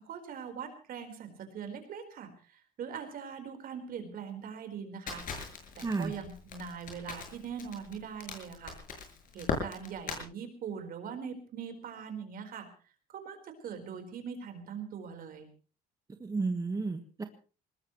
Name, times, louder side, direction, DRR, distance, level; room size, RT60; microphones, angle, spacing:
voice 1, 0.0-5.2 5.7-8.8 9.3-12.7 13.1-15.5, right 7 dB, 60° right, 6 dB, 4.4 m, -42 dB
Crackle, 5.1-10.2, left 5 dB, 55° left, 6.8 m, -39 dB
voice 2, 5.8-6.1 16.2-17.2, right 3 dB, 20° right, 6 dB, 1.5 m, -32 dB
22.0 x 20.0 x 3.1 m, 0.37 s
cardioid pair, 110°, 17 cm